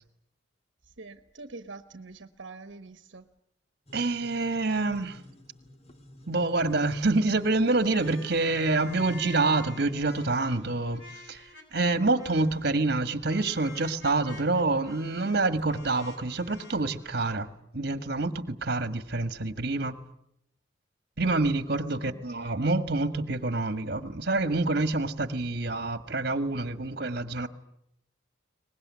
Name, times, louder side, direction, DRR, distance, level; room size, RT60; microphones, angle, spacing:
voice 1, 0.8-3.2 22.0-22.2, right 3 dB, 75° right, 1.2 m, -45 dB
sound 1, 3.9-9.5, left 1 dB, 35° left, 2.4 m, -50 dB
voice 2, 3.9-5.2 6.3-17.5 17.7-20.0 21.2-27.5, right 2 dB, 55° right, 1.6 m, -27 dB
sound 2, 7.9-11.9 12.2-12.7 13.2-17.3, left 3 dB, 60° left, 5.6 m, -48 dB
23.5 x 20.0 x 9.6 m
head